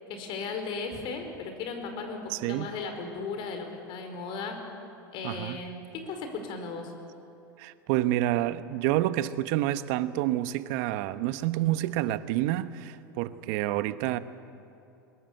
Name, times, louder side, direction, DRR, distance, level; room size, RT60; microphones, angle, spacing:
voice 1, 0.1-4.6 5.1-6.9, left 4 dB, 50° left, 5 dB, 4.8 m, -36 dB
voice 2, 2.3-2.7 5.2-5.6 7.6-14.2, right 14 dB, 55° right, 13 dB, 1.1 m, -28 dB
23.0 x 21.5 x 8.3 m, 2.6 s
hypercardioid pair, 90°, 11 cm